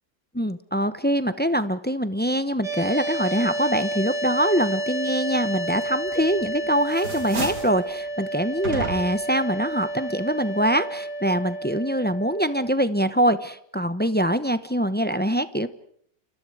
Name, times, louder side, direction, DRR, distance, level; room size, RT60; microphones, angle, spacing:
voice 1, 0.3-15.7, equal, 10° left, 12 dB, 0.6 m, -24 dB
sound 1, 2.6-12.7, right 1 dB, 20° right, 4.7 m, -31 dB
sound 2, 6.1-6.5 6.8-7.8 8.6-9.3, right 3 dB, 75° right, 4.2 m, -32 dB
29.5 x 28.0 x 4.9 m, 0.64 s
omnidirectional pair, 1.8 m